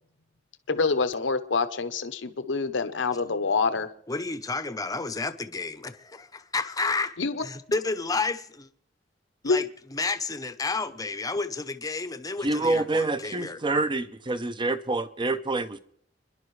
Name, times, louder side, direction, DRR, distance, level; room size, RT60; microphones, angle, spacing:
voice 1, 0.7-3.9 7.2-7.4 9.4-9.6, left 4 dB, 80° left, 0.8 m, -26 dB
voice 2, 4.1-8.7 9.4-9.6 9.9-13.6, left 3 dB, 20° left, 0.7 m, -31 dB
voice 3, 12.4-15.8, right 2 dB, 25° right, 0.7 m, -27 dB
30.0 x 11.0 x 3.2 m
head